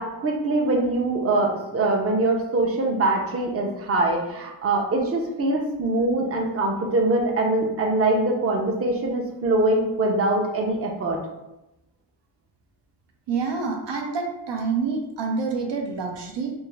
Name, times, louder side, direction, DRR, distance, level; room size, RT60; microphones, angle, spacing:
voice 1, 0.0-11.2, right 2 dB, 35° right, 0 dB, 0.6 m, -23 dB
voice 2, 13.3-16.5, right 4 dB, 75° right, 1 dB, 0.6 m, -27 dB
3.4 x 2.0 x 3.2 m, 0.94 s
wide cardioid pair, 85°, 43 cm